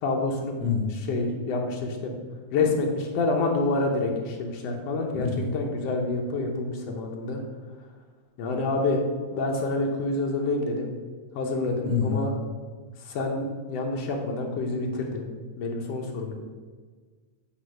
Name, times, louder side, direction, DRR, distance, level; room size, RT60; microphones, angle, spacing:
voice 1, 0.0-0.5 0.9-2.1 2.5-7.4 8.4-9.0 9.3-10.9 11.3-12.3 13.0-15.3 15.6-16.4, left 3 dB, 85° left, 1 dB, 1.4 m, -27 dB
voice 2, 0.6-0.9 5.3-5.4 11.9-12.2, left 6 dB, 35° left, -6 dB, 2.4 m, -26 dB
7.9 x 3.1 x 6.3 m, 1.5 s
omnidirectional pair, 3.9 m